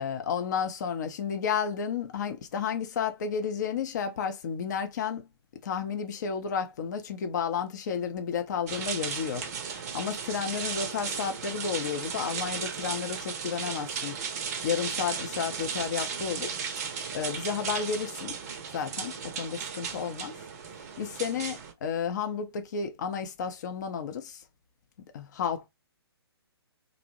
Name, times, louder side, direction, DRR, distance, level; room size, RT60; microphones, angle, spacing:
voice 1, 0.0-5.3 5.6-14.2 14.6-16.5 16.8-18.4 18.7-20.4 21.0-24.4 25.1-25.7, left 7 dB, 45° left, 0.6 m, -32 dB
sound 1, 8.7-21.7, right 6 dB, 35° right, 0.5 m, -35 dB
2.6 x 2.0 x 2.8 m
figure-of-eight pair, 130°, 14 cm